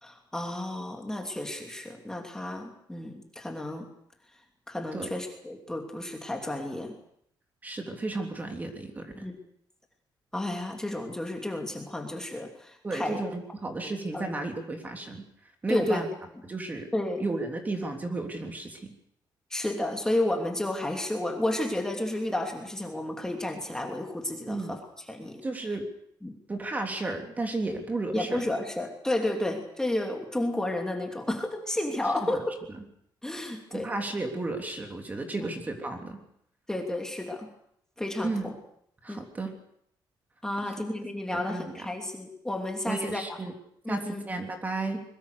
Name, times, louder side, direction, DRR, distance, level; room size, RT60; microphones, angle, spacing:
voice 1, 0.0-3.9 4.7-7.0 9.1-9.3 10.3-13.2 13.8-14.3 15.7-16.0 16.9-17.2 19.5-24.8 25.1-25.4 26.2-26.3 28.1-32.5 33.2-33.9 36.7-37.5 38.0-38.6 39.1-39.2 40.4-43.2 43.8-44.2, left 1 dB, 5° left, 2 dB, 2.9 m, -31 dB
voice 2, 7.6-9.2 12.8-15.2 15.6-16.1 16.4-16.9 17.2-18.9 24.5-24.8 25.4-25.9 26.5-28.4 32.2-32.4 32.7-32.8 33.7-36.2 38.2-38.5 39.0-39.5 40.6-40.8 41.3-41.9 42.9-43.5 43.9-45.0, right 2 dB, 20° right, 4 dB, 3.3 m, -33 dB
24.0 x 22.5 x 6.7 m, 0.72 s
cardioid pair, 150°, 8 cm